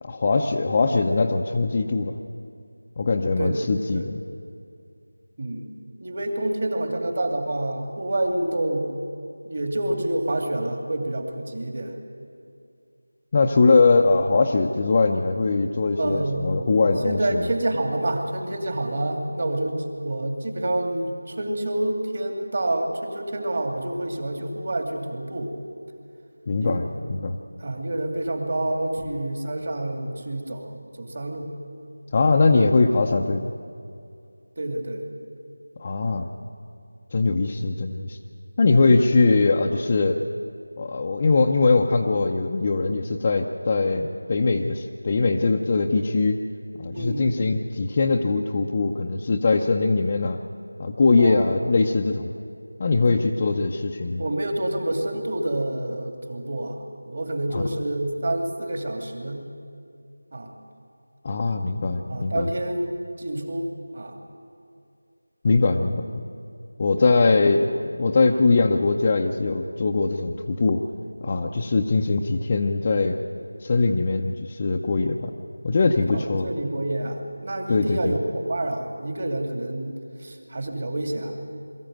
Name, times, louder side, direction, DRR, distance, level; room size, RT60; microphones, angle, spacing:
voice 1, 0.0-2.2 3.0-4.2 13.3-17.4 26.5-27.4 32.1-33.5 35.8-36.3 37.1-38.2 38.6-40.2 40.8-46.4 46.8-50.4 50.8-52.3 52.8-54.2 57.5-57.6 61.2-62.5 65.4-66.2 66.8-67.7 68.0-70.8 71.2-73.2 73.6-75.3 75.6-76.5 77.7-78.1, left 3 dB, 25° left, 0 dB, 0.6 m, -21 dB
voice 2, 3.4-4.0 5.4-5.7 6.0-8.9 9.4-12.0 16.0-16.7 17.0-25.6 26.6-26.8 27.6-31.5 34.6-35.0 46.9-47.3 51.2-51.5 54.2-59.4 60.3-60.5 62.1-64.2 67.0-67.5 76.1-81.3, right 1 dB, 40° right, 4 dB, 2.5 m, -28 dB
22.5 x 14.5 x 9.2 m, 2.5 s
figure-of-eight pair, 175°, 0 cm